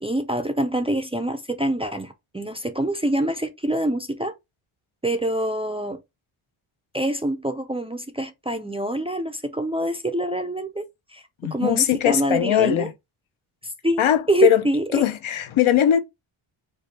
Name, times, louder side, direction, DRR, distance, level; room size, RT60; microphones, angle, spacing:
voice 1, 0.0-4.3 5.0-6.0 6.9-10.8 11.1-12.9 13.6-14.0 14.3-15.0, right 1 dB, 10° right, 0.4 m, -25 dB
voice 2, 11.4-12.9 14.0-14.6 14.9-16.0, left 11 dB, 70° left, 0.8 m, -20 dB
4.9 x 2.2 x 4.1 m
wide cardioid pair, 135°, 50 cm